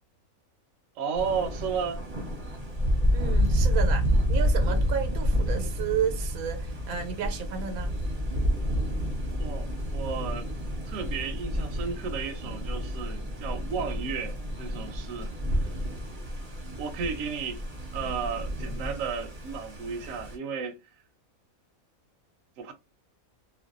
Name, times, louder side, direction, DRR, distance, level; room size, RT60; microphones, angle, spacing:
voice 1, 1.0-2.0 3.5-3.6 9.4-10.5 10.9-15.3 15.6-15.7 16.8-17.6 17.9-20.8 22.6-22.7, right 6 dB, 70° right, 0.9 m, -33 dB
Thunder, 1.1-20.3, equal, 35° right, 0.7 m, -29 dB
voice 2, 3.1-8.0, right 8 dB, 90° right, 1.1 m, -32 dB
2.6 x 2.1 x 2.4 m
omnidirectional pair, 1.5 m